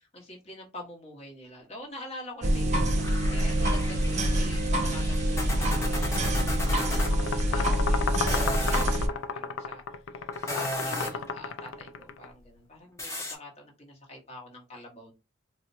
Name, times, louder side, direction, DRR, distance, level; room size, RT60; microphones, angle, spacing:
voice 1, 0.1-9.8 10.5-15.1, left 2 dB, 35° left, 0 dB, 1.1 m, -45 dB
sound 1, 2.4-9.1, right 1 dB, 35° right, 0.5 m, -26 dB
sound 2, 3.0-7.1 8.1-8.9 10.3-11.3 13.0-13.4, left 1 dB, 15° left, 0.6 m, -35 dB
sound 3, 6.5-12.3, left 4 dB, 90° left, 0.4 m, -33 dB
4.2 x 2.1 x 2.6 m, 0.27 s
head